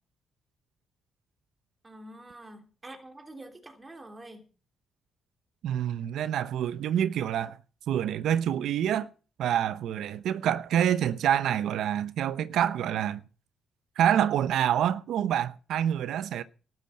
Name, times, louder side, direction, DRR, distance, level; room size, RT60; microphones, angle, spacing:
voice 1, 1.8-4.4, right 1 dB, 20° right, 3.1 m, -46 dB
voice 2, 5.6-7.6 7.9-9.1 9.4-13.2 14.0-16.4, right 10 dB, 75° right, 0.8 m, -27 dB
12.5 x 12.0 x 5.5 m
cardioid pair, 90°, 0 cm